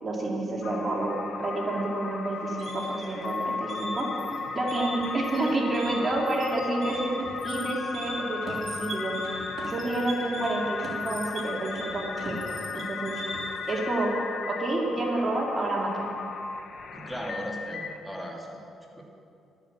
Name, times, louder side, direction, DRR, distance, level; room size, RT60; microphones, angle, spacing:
voice 1, 0.0-4.1 4.5-9.1 9.7-13.2 13.7-14.1 14.5-16.1, right 2 dB, 30° right, -1 dB, 2.4 m, -29 dB
sound 1, 0.6-18.0, left 4 dB, 60° left, 1.0 m, -36 dB
sound 2, 2.3-13.7, right 2 dB, 50° right, 2.8 m, -40 dB
voice 2, 16.9-19.0, equal, ahead, -1 dB, 2.2 m, -37 dB
12.0 x 9.2 x 7.2 m, 2.6 s
cardioid pair, 90°, 0 cm